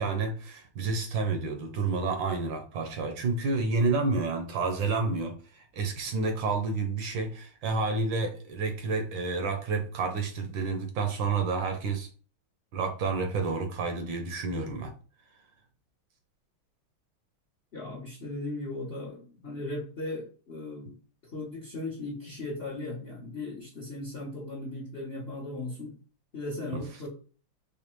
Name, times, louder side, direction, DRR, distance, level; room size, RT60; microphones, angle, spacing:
voice 1, 0.0-12.1 12.7-14.9 26.7-26.8, right 4 dB, 70° right, 1.3 m, -30 dB
voice 2, 17.7-20.9 21.3-25.9 26.3-27.1, left 2 dB, 50° left, 0.8 m, -37 dB
5.1 x 2.2 x 3.0 m
omnidirectional pair, 2.3 m